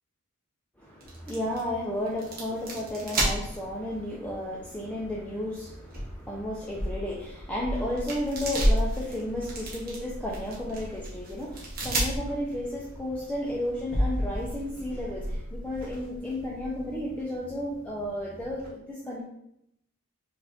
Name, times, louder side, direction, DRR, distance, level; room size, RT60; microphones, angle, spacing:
voice 1, 0.8-19.2, left 1 dB, 5° left, -6 dB, 0.5 m, -33 dB
sound 1, 1.0-18.7, equal, 40° right, 1.2 m, -33 dB
5.0 x 2.6 x 3.5 m, 0.76 s
head